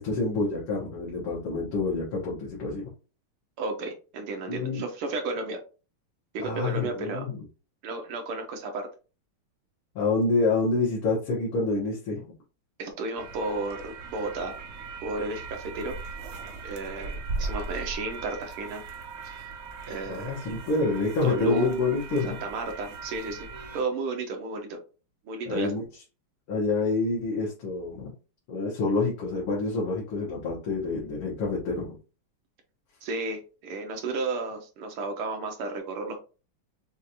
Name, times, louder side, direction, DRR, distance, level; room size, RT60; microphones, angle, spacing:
voice 1, 0.0-2.8 4.5-4.8 6.4-7.4 10.0-12.2 20.1-22.4 25.5-25.9 26.5-28.1 28.5-32.0, left 3 dB, 75° left, -6 dB, 2.2 m, -27 dB
voice 2, 3.6-5.6 6.3-7.2 7.8-8.9 12.8-14.5 15.0-16.0 16.6-18.8 19.3-19.4 19.9-20.4 21.2-21.7 22.4-23.5 23.7-24.8 25.3-25.7 33.0-36.2, right 3 dB, 85° right, 4 dB, 1.9 m, -32 dB
sound 1, 13.2-23.8, right 4 dB, 65° right, 0.9 m, -39 dB
6.2 x 2.5 x 2.8 m, 0.34 s
omnidirectional pair, 2.4 m